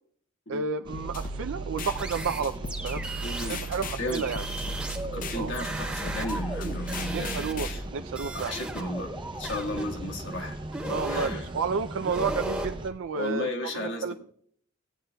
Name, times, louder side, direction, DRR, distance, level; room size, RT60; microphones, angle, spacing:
voice 1, 0.5-3.1 3.5-4.4 5.3-5.5 7.1-8.6 10.9-14.1, right 5 dB, 70° right, 7 dB, 0.3 m, -31 dB
sound 1, 0.8-12.9, right 1 dB, 20° right, 0.6 m, -40 dB
sound 2, 0.9-7.8, right 1 dB, 40° left, 0.5 m, -36 dB
sound 3, 2.0-3.7 4.1-7.9 8.2-10.1 10.7-11.4 12.0-12.7, right 1 dB, 5° right, 1.2 m, -36 dB
voice 2, 3.2-3.7 4.0-4.2 5.1-7.8 8.3-9.1 9.4-10.6 11.0-11.5 13.1-14.1, left 1 dB, 60° left, 1 dB, 1.5 m, -34 dB
16.5 x 9.5 x 2.2 m, 0.63 s
head